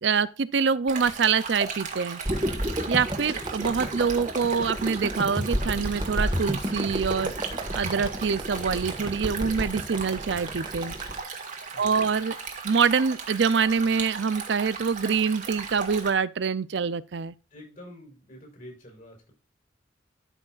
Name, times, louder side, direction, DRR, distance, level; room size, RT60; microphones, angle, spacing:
voice 1, 0.0-2.2 2.9-7.3 7.7-10.9 11.8-12.4 12.6-17.3, right 5 dB, 70° right, 0.5 m, -25 dB
Stream, 0.9-16.1, right 5 dB, 45° right, 1.9 m, -37 dB
sound 1, 2.2-11.2, equal, 25° right, 1.7 m, -31 dB
voice 2, 11.7-12.1 17.5-19.3, left 1 dB, 45° left, 5.0 m, -47 dB
13.0 x 6.1 x 2.5 m
head